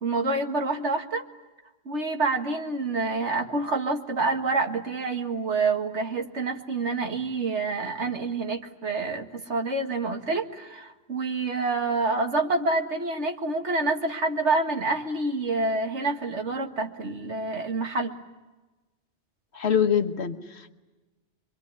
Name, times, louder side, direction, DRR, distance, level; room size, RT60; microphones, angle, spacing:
voice 1, 0.0-1.3 1.9-18.1, right 3 dB, 75° right, 4 dB, 2.2 m, -27 dB
voice 2, 19.5-20.7, left 8 dB, 65° left, 6 dB, 1.6 m, -25 dB
25.5 x 24.5 x 9.6 m, 1.1 s
omnidirectional pair, 1.2 m